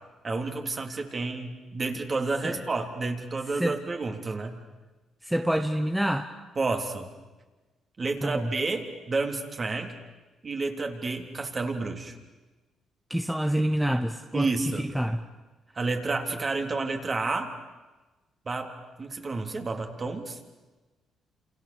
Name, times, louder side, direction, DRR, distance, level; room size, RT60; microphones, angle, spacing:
voice 1, 0.2-4.6 6.6-7.1 8.0-9.9 10.4-12.2 14.3-14.9 15.8-17.5 18.5-18.7 19.0-20.4, right 3 dB, 35° right, 4 dB, 3.4 m, -30 dB
voice 2, 5.2-6.3 8.2-8.5 13.1-14.5 14.9-15.2, right 1 dB, 5° right, 6 dB, 1.2 m, -27 dB
29.0 x 28.0 x 7.2 m, 1.2 s
cardioid pair, 90°, 0 cm